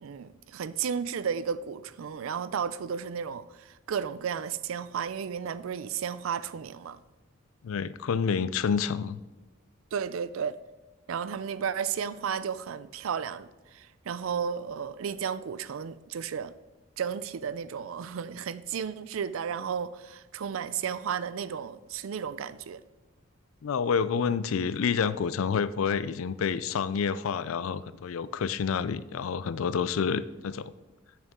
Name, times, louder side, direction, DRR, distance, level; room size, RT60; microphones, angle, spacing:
voice 1, 0.0-7.0 9.9-10.6 11.1-16.5 17.0-22.8, right 7 dB, 80° right, 0.4 m, -33 dB
voice 2, 7.6-9.2 23.6-30.7, left 6 dB, 85° left, 0.4 m, -28 dB
8.1 x 6.7 x 3.6 m
head